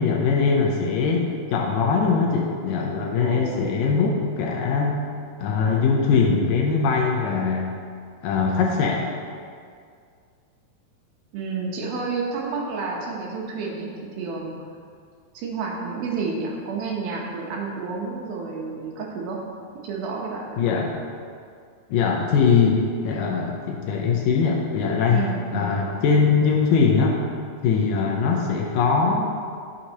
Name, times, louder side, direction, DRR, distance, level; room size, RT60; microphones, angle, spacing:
voice 1, 0.0-5.0 5.4-7.7 8.2-9.1 20.6-21.0 21.9-25.2 25.5-27.2 27.6-29.4, left 5 dB, 75° left, 0 dB, 2.1 m, -21 dB
voice 2, 3.2-3.8 11.3-14.5 15.3-19.4 19.8-20.6 25.1-25.8, right 4 dB, 75° right, -2 dB, 2.8 m, -30 dB
11.0 x 6.5 x 2.9 m, 2.2 s
omnidirectional pair, 4.4 m